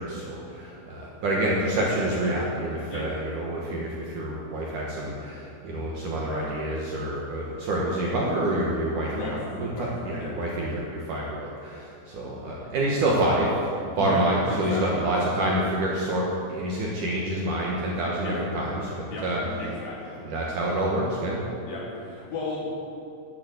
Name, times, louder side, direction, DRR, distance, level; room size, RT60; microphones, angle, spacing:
voice 1, 0.0-19.4 20.2-21.4, right 1 dB, 60° right, -4 dB, 2.3 m, -27 dB
voice 2, 13.9-15.0 18.2-18.4 19.1-20.2 21.7-22.8, left 2 dB, 60° left, -6 dB, 4.4 m, -34 dB
11.5 x 7.8 x 8.3 m, 2.5 s
omnidirectional pair, 5.0 m